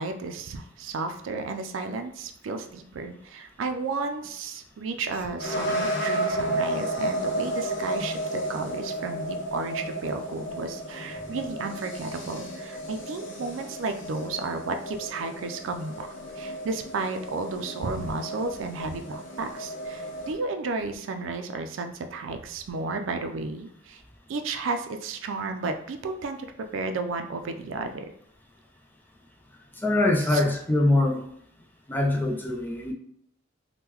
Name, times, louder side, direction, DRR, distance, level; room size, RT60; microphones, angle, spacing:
voice 1, 0.0-16.1 16.4-24.0 24.3-26.5 26.7-28.0 30.3-30.4, right 3 dB, 85° right, 6 dB, 0.4 m, -33 dB
sound 1, 5.4-20.3, right 1 dB, 70° left, 0.7 m, -33 dB
voice 2, 29.8-31.2 31.9-32.9, left 2 dB, 10° left, 0 dB, 0.4 m, -23 dB
3.6 x 2.1 x 2.9 m, 0.71 s
head